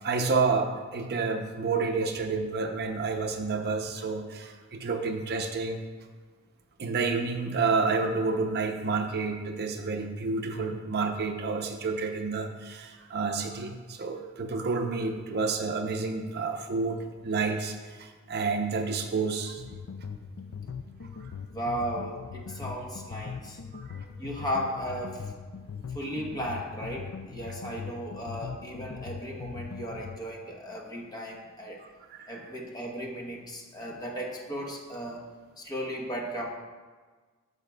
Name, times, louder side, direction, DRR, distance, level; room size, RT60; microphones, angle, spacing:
voice 1, 0.0-5.8 6.8-19.6 23.7-24.0 31.8-32.4, right 4 dB, 50° right, 4 dB, 0.6 m, -30 dB
sound 1, 19.6-30.2, left 6 dB, 70° left, 0.4 m, -41 dB
voice 2, 21.5-23.6 24.2-25.3 25.9-31.8 32.3-35.3 35.6-36.5, equal, 20° left, -1 dB, 1.0 m, -35 dB
13.5 x 6.5 x 2.3 m, 1.4 s
head